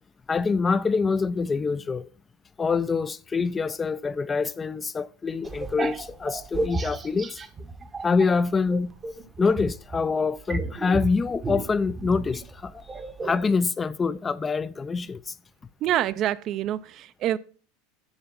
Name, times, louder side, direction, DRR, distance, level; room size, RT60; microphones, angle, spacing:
voice 1, 0.3-2.1 2.6-7.4 8.0-8.9 9.4-12.9 13.2-15.3, left 4 dB, 20° left, 0.4 m, -25 dB
sound 1, 5.4-8.3 8.7-13.5, right 2 dB, 20° right, 0.8 m, -33 dB
voice 2, 15.8-17.4, right 12 dB, 45° right, 0.4 m, -26 dB
6.9 x 6.5 x 5.8 m
supercardioid pair, 125°, 0 cm